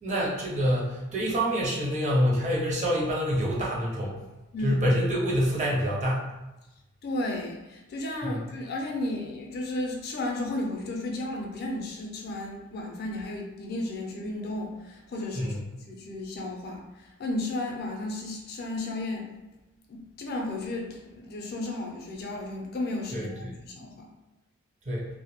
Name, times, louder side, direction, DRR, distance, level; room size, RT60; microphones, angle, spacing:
voice 1, 0.0-4.2 4.6-6.2 8.2-8.4 15.4-15.6 23.1-23.5 24.9-25.0, equal, 35° right, -4 dB, 0.6 m, -26 dB
voice 2, 4.5-4.8 7.0-15.5 15.9-19.3 19.9-24.1, left 2 dB, 50° left, 0 dB, 0.4 m, -34 dB
2.1 x 2.0 x 2.8 m, 1.0 s
head